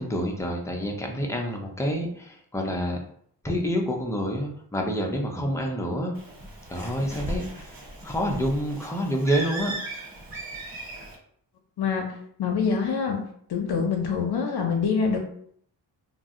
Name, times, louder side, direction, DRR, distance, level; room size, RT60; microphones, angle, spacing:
voice 1, 0.0-3.0 3.4-6.1 6.7-7.7 8.0-9.8, equal, 5° left, 1 dB, 0.5 m, -28 dB
Bird, 6.1-11.1, right 1 dB, 55° right, 0.9 m, -37 dB
voice 2, 11.8-13.2 13.5-15.2, left 5 dB, 65° left, 2 dB, 0.6 m, -25 dB
2.6 x 2.0 x 3.5 m, 0.64 s
cardioid pair, 95°, 41 cm